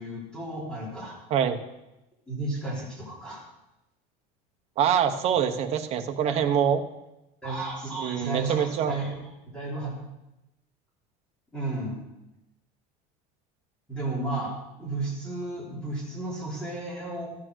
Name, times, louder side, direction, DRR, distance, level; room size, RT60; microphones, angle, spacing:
voice 1, 0.0-1.2 2.3-3.4 6.2-6.6 7.4-9.9 11.5-12.0 13.9-17.3, right 2 dB, 5° left, -6 dB, 3.6 m, -33 dB
voice 2, 4.8-6.8 8.0-8.9, right 8 dB, 40° right, 6 dB, 1.1 m, -25 dB
14.0 x 8.6 x 6.4 m, 0.94 s
cardioid pair, 170°, 17 cm